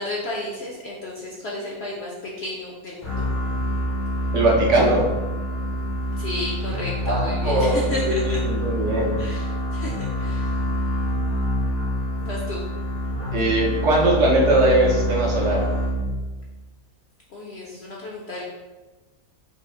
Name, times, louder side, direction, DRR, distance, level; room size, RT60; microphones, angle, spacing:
voice 1, 0.0-3.3 6.2-8.4 9.2-10.6 12.2-12.6 17.3-18.4, left 1 dB, 60° left, -3 dB, 0.7 m, -33 dB
sound 1, 3.0-16.4, equal, 20° left, 0.4 m, -26 dB
voice 2, 4.3-5.1 7.1-7.8 8.2-9.2 13.3-15.7, right 1 dB, 60° right, -2 dB, 0.9 m, -20 dB
5.4 x 2.1 x 3.7 m, 1.2 s
omnidirectional pair, 1.6 m